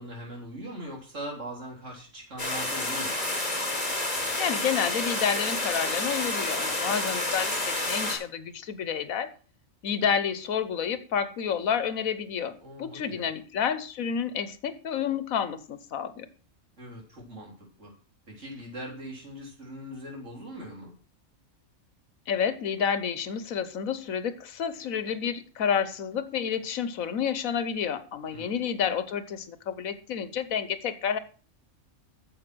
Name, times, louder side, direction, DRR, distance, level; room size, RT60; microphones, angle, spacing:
voice 1, 0.0-3.2 12.6-13.3 16.8-17.9 18.3-20.9 28.3-28.6, equal, 60° right, 3.9 m, -41 dB
sound 1, 2.4-8.2, left 2 dB, 30° left, 4.4 m, -29 dB
voice 2, 4.4-9.3 9.8-16.3 22.3-31.2, left 7 dB, 90° left, 1.4 m, -29 dB
9.3 x 7.1 x 6.1 m
omnidirectional pair, 1.4 m